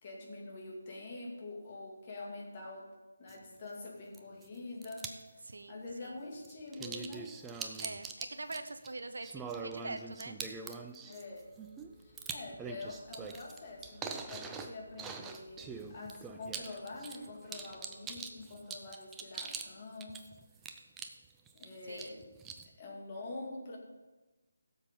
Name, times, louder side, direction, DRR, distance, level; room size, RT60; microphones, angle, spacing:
voice 1, 0.0-2.9 3.2-5.1 5.7-7.4 11.0-11.5 12.0-20.2 21.5-22.3 22.8-23.8, left 2 dB, 30° left, -2 dB, 2.3 m, -45 dB
sound 1, 3.3-3.4 4.1-4.5 4.8-5.2 6.4-19.7 20.0-21.6 22.0-22.7, right 5 dB, 10° right, 0.5 m, -43 dB
voice 2, 5.4-6.2 7.8-10.4 21.9-22.2, right 2 dB, 70° right, 9 dB, 0.8 m, -44 dB
Telephone, 11.3-18.3, equal, 40° right, 1.8 m, -63 dB
16.0 x 7.2 x 3.7 m, 1.1 s
figure-of-eight pair, 155°, 0 cm